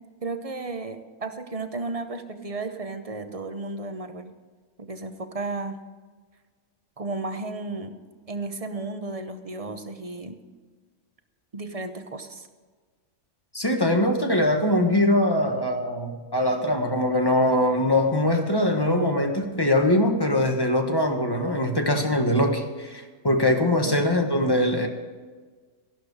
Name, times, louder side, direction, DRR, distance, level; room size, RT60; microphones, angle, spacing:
voice 1, 0.2-4.3 4.8-5.8 7.0-7.9 8.3-10.4 11.5-12.5 23.8-24.0, right 3 dB, 30° right, 8 dB, 0.8 m, -33 dB
voice 2, 13.5-24.9, left 1 dB, 15° left, 4 dB, 1.3 m, -22 dB
14.5 x 11.5 x 4.9 m, 1.4 s
omnidirectional pair, 1.5 m